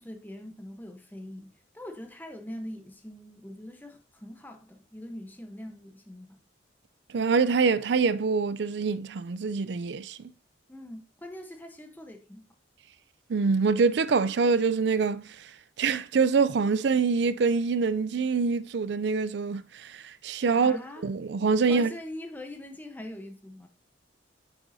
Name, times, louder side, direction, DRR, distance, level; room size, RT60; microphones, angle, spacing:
voice 1, 0.0-6.4 10.7-12.5 20.5-21.1 21.7-23.7, left 1 dB, 10° left, 0.9 m, -42 dB
voice 2, 7.1-10.3 13.3-15.5 15.8-20.8 21.0-21.9, right 5 dB, 65° right, 0.4 m, -25 dB
9.0 x 5.9 x 2.7 m
head